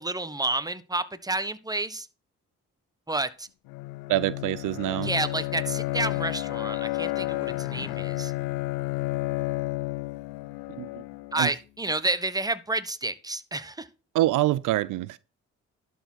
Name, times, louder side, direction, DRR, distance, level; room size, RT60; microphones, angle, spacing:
voice 1, 0.0-2.1 3.1-3.5 5.0-8.3 11.3-13.9, right 2 dB, 10° right, 1.2 m, -30 dB
Bowed string instrument, 3.7-11.5, left 20 dB, 85° left, 0.5 m, -31 dB
voice 2, 4.1-5.1 10.8-11.0 11.4-11.5 14.1-15.2, right 16 dB, 75° right, 0.5 m, -25 dB
11.5 x 4.7 x 6.2 m
supercardioid pair, 55°, 32 cm